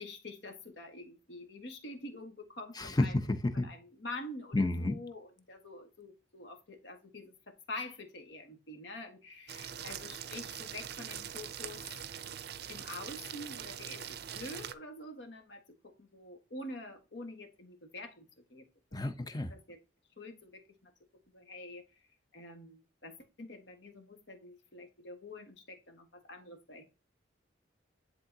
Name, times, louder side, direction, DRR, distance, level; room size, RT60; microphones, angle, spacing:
voice 1, 0.0-3.2 3.5-11.8 12.7-18.2 18.5-19.8 20.2-20.9 21.3-21.8 22.3-26.8, left 2 dB, 65° left, 1.6 m, -47 dB
voice 2, 2.8-3.7 4.5-5.0 18.9-19.5, left 2 dB, 20° left, 0.6 m, -31 dB
sound 1, 9.5-14.7, right 9 dB, 55° right, 0.5 m, -43 dB
10.5 x 3.8 x 2.7 m
head